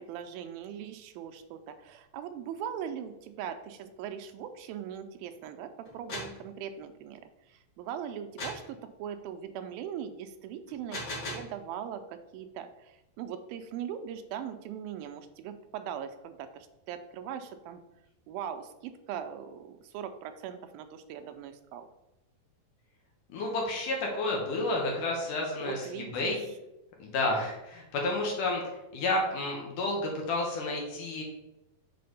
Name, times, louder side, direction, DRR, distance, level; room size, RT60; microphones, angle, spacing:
voice 1, 0.0-7.2 7.5-17.8 18.3-21.9 25.6-26.3, right 8 dB, 90° right, 8 dB, 2.4 m, -40 dB
sound 1, 5.9-6.4 8.4-8.7 10.7-11.5, left 1 dB, 45° left, 3.0 m, -38 dB
voice 2, 23.3-26.4 27.0-31.2, left 2 dB, 70° left, 0 dB, 2.7 m, -31 dB
6.6 x 4.2 x 5.4 m, 0.92 s
omnidirectional pair, 4.1 m